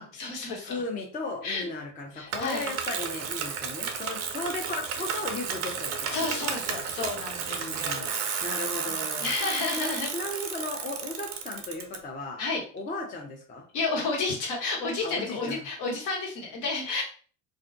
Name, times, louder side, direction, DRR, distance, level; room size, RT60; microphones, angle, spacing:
voice 1, 0.0-0.7 1.4-1.7 2.1-2.7 3.8-4.1 6.1-8.5 8.8-10.1 12.4-12.6 13.7-17.0, left 3 dB, 65° left, -1 dB, 1.2 m, -32 dB
voice 2, 0.6-6.4 7.5-8.1 8.4-9.3 9.7-12.4 12.7-13.6 15.0-15.6, left 2 dB, 20° left, 0 dB, 0.6 m, -36 dB
Bicycle, 2.3-12.0, right 6 dB, 85° right, 0.6 m, -33 dB
2.4 x 2.2 x 2.5 m, 0.40 s
hypercardioid pair, 85°, 36 cm